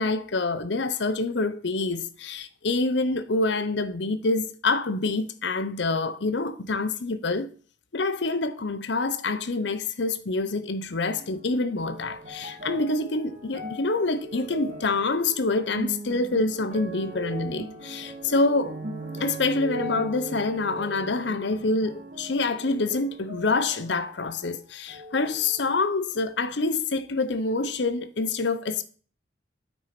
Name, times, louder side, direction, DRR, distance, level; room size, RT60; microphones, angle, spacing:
voice 1, 0.0-7.5 7.9-18.8 19.2-28.8, left 3 dB, 65° left, 0.8 m, -26 dB
sound 1, 11.1-24.6 24.9-25.8 26.5-26.6, right 1 dB, 45° right, 2.8 m, -39 dB
9.0 x 8.3 x 5.9 m
head